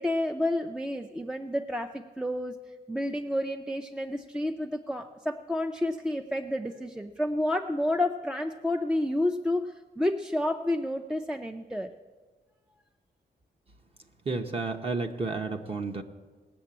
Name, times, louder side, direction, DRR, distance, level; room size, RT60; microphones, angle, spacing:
voice 1, 0.0-2.5 2.9-11.9, left 1 dB, 5° right, 6 dB, 0.4 m, -30 dB
voice 2, 14.3-16.0, right 3 dB, 35° right, 4 dB, 0.8 m, -31 dB
19.0 x 6.7 x 8.7 m, 1.3 s
wide cardioid pair, 180°, 18 cm